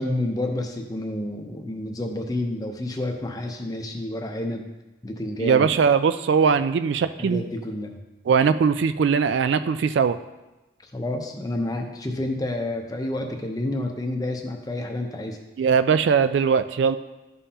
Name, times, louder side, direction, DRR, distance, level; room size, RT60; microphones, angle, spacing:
voice 1, 0.0-4.7 5.0-5.7 7.2-8.0 10.9-15.4, left 1 dB, 20° left, 3 dB, 0.7 m, -29 dB
voice 2, 5.4-7.4 8.3-10.2 15.6-17.0, right 6 dB, 65° right, 12 dB, 0.3 m, -20 dB
12.5 x 5.5 x 2.8 m, 1.1 s
head